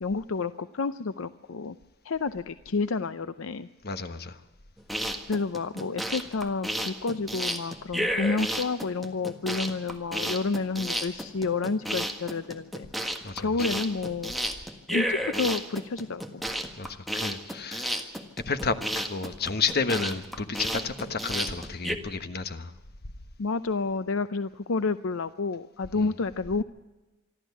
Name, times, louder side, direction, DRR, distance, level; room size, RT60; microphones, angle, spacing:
voice 1, 0.0-1.8 2.0-3.7 5.3-12.9 13.4-14.3 14.9-16.4 23.4-26.6, left 4 dB, 70° left, 0.6 m, -30 dB
voice 2, 3.8-4.4 13.2-13.6 16.8-18.0 18.5-22.7 26.0-26.1, left 4 dB, 50° left, 1.3 m, -31 dB
sound 1, 4.8-21.9, equal, ahead, 1.6 m, -32 dB
26.0 x 13.0 x 8.4 m
head